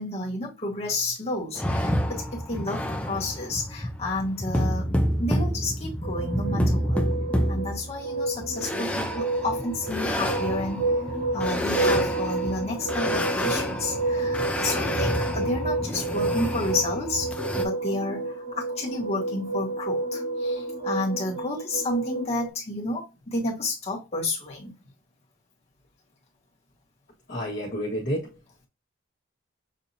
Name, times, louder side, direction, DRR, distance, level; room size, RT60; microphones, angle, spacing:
voice 1, 0.0-4.9 5.2-7.0 7.5-10.9 11.3-17.3 17.6-24.7, left 2 dB, 30° left, 1.5 m, -31 dB
sound 1, 1.6-17.6, equal, 5° left, 0.5 m, -29 dB
sound 2, 6.0-22.5, right 2 dB, 25° right, 0.8 m, -30 dB
voice 2, 27.3-28.4, equal, 50° left, 1.4 m, -30 dB
6.4 x 2.7 x 2.7 m
head